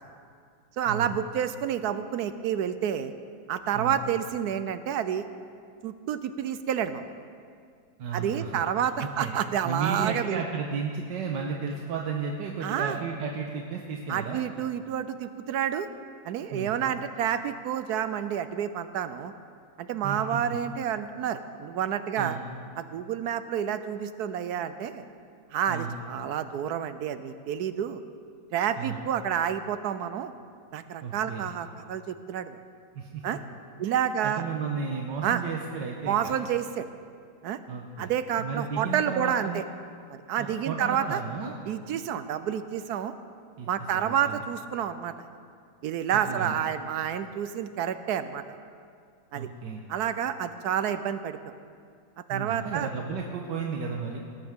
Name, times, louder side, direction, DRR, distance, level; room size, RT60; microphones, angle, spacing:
voice 1, 0.8-3.1 3.5-5.2 5.8-7.0 8.1-10.4 12.6-13.0 14.1-15.9 16.2-19.3 19.8-22.4 22.8-25.0 25.5-28.0 28.5-30.3 30.7-32.6 33.2-33.4 33.8-34.4 35.2-35.4 36.1-36.9 37.4-37.6 38.0-39.6 40.1-41.2 41.7-43.1 43.7-45.1 45.8-48.4 49.3-49.5 49.9-51.4 52.3-52.9, right 9 dB, 75° right, 11 dB, 1.1 m, -29 dB
voice 2, 8.0-9.3 9.6-14.4 16.5-16.7 20.0-20.4 22.2-22.4 25.7-25.9 28.8-29.1 31.0-31.5 32.9-33.2 33.8-36.4 37.7-38.1 38.4-39.6 40.4-41.8 43.6-43.7 44.0-44.4 46.1-46.6 49.3-49.8 52.3-54.2, right 5 dB, 90° right, 0 dB, 1.6 m, -33 dB
18.5 x 15.0 x 3.6 m, 2.3 s
omnidirectional pair, 1.8 m